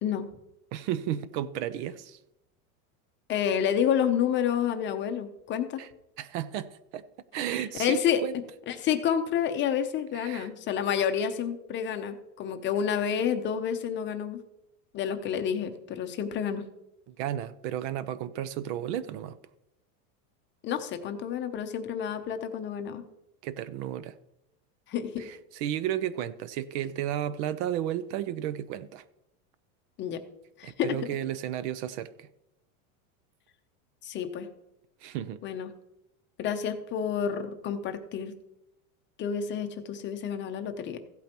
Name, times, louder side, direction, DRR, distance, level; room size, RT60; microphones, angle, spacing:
voice 1, 0.7-2.2 5.8-5.9 6.2-7.0 7.3-8.3 10.1-10.5 17.1-19.4 23.4-24.1 25.2-29.0 30.6-32.3 35.0-35.4, right 11 dB, 50° right, 15 dB, 0.6 m, -33 dB
voice 2, 3.3-5.8 7.8-8.2 8.7-14.4 14.9-16.6 20.6-23.0 24.9-25.3 30.0-30.2 30.6-31.0 34.0-34.5 35.4-35.7 36.4-38.3 39.2-41.0, left 8 dB, 25° left, 7 dB, 0.7 m, -29 dB
15.5 x 8.5 x 3.0 m, 0.88 s
supercardioid pair, 150°, 43 cm